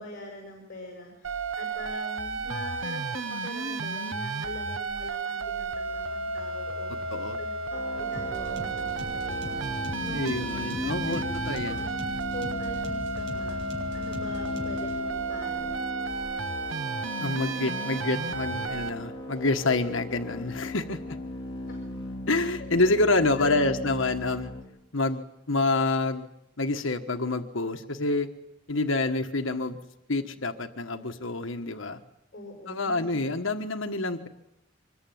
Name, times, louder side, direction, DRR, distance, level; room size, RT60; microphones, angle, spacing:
voice 1, 0.0-9.7 10.0-10.4 11.0-11.2 11.7-11.9 12.3-15.8 21.6-21.9 22.6-22.7 23.4-23.7 32.3-33.2, left 1 dB, 45° left, 0 dB, 7.3 m, -42 dB
sound 1, 1.2-18.9, right 3 dB, 85° right, 1.1 m, -33 dB
sound 2, 7.7-24.6, left 2 dB, 25° left, 4.6 m, -38 dB
sound 3, 8.1-15.0, equal, 60° right, 7.5 m, -41 dB
voice 2, 10.1-11.8 17.2-21.2 22.3-24.5 24.9-26.3 26.6-28.3 28.7-29.8 30.1-32.0 32.7-34.3, left 2 dB, 80° left, 6 dB, 1.5 m, -27 dB
25.5 x 22.0 x 9.4 m, 0.83 s
head